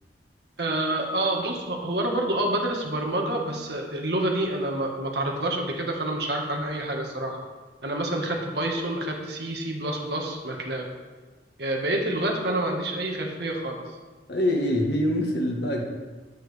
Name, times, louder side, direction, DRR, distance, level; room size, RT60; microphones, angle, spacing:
voice 1, 0.6-7.4 7.8-10.9 11.6-13.8, right 1 dB, 70° right, 0 dB, 1.8 m, -28 dB
voice 2, 14.3-15.8, left 1 dB, 70° left, 1 dB, 1.7 m, -24 dB
10.5 x 8.8 x 3.6 m, 1.3 s
head